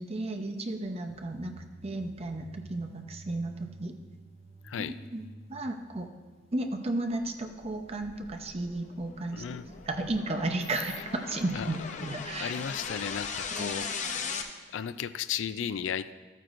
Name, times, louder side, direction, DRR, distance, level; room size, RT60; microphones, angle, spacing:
voice 1, 0.0-1.5 1.8-3.9 4.8-5.2 5.5-6.1 6.5-12.5 13.5-13.7, right 2 dB, 35° right, 5 dB, 0.7 m, -34 dB
sound 1, 1.1-9.9, right 2 dB, 75° right, 1.2 m, -53 dB
voice 2, 4.6-4.9 9.3-9.7 11.0-11.1 11.5-11.7 12.4-13.9 14.7-16.1, left 8 dB, 85° left, 14 dB, 0.4 m, -34 dB
sound 2, 7.5-14.4, left 5 dB, 40° left, 0.7 m, -39 dB
13.0 x 9.0 x 2.6 m, 1.4 s
head